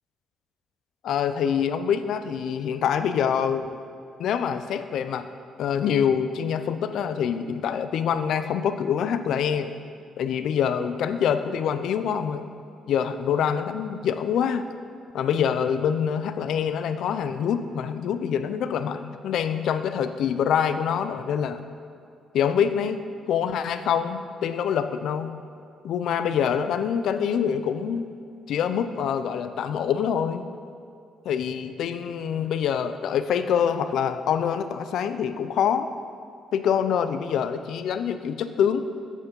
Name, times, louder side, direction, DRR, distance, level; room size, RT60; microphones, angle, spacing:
voice 1, 1.0-3.7 4.2-5.2 5.6-9.7 10.2-12.4 12.9-14.6 15.1-21.6 22.3-23.0 23.3-25.3 25.8-28.1 28.5-30.5 31.3-35.9 36.5-38.8, left 8 dB, 75° left, 10 dB, 0.5 m, -25 dB
8.3 x 6.9 x 5.3 m, 2.4 s
cardioid pair, 90°, 0 cm